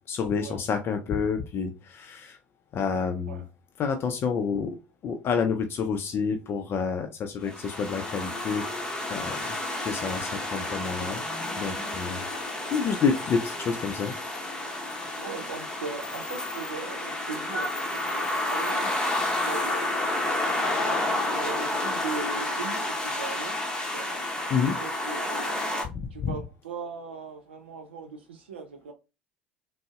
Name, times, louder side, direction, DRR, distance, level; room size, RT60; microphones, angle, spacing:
voice 1, 0.1-2.4 2.7-3.4 3.8-4.7 5.0-8.6 9.1-9.4 9.7-11.2 11.6-12.2 12.7-14.1 24.5-24.8 26.2-26.3, left 6 dB, 45° left, 0.4 m, -28 dB
sound 1, 7.5-25.8, left 1 dB, 15° left, 0.9 m, -30 dB
voice 2, 15.1-18.9 19.5-20.0 20.5-23.6 23.9-25.6 26.1-28.9, right 5 dB, 85° right, 0.6 m, -39 dB
3.8 x 2.0 x 2.3 m
hypercardioid pair, 70°, 6 cm